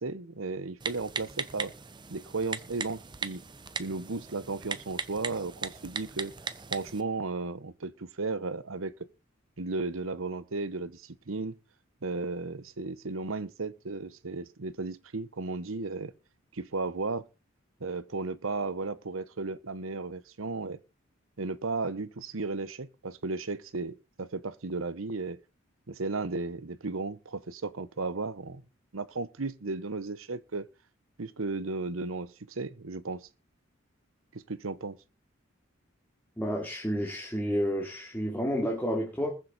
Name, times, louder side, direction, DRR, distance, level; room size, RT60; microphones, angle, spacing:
voice 1, 0.0-1.7 2.1-3.4 3.8-6.3 6.7-8.9 9.6-11.6 12.0-16.1 16.5-17.3 17.8-20.8 21.4-25.4 25.9-28.6 28.9-30.7 31.2-33.3 34.3-35.0, right 3 dB, 80° right, 1.0 m, -35 dB
Typing, 0.8-7.0, right 5 dB, 20° right, 0.8 m, -38 dB
voice 2, 36.4-39.3, equal, 10° left, 2.9 m, -30 dB
21.0 x 7.4 x 4.1 m
head